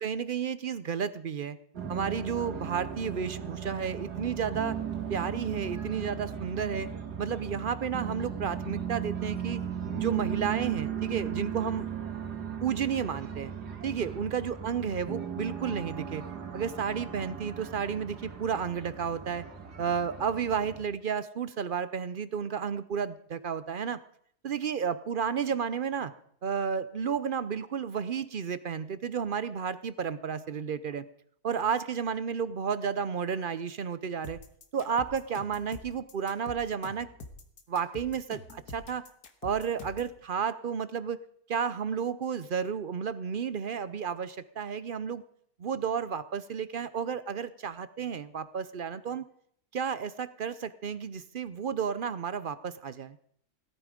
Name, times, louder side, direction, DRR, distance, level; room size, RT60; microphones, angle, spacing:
voice 1, 0.0-1.6 1.9-4.8 5.1-6.9 7.2-9.6 9.9-11.9 12.6-13.5 13.8-16.2 16.5-19.5 19.8-24.0 24.4-26.1 26.4-31.0 31.4-34.4 34.7-37.1 37.7-39.0 39.4-41.2 41.5-45.2 45.6-49.2 49.7-53.2, right 7 dB, 60° right, 14 dB, 0.5 m, -32 dB
sound 1, 1.7-20.8, right 8 dB, 90° right, 2.2 m, -37 dB
sound 2, 34.2-40.2, left 2 dB, 75° left, 2.0 m, -46 dB
17.5 x 12.5 x 5.1 m, 0.65 s
omnidirectional pair, 1.7 m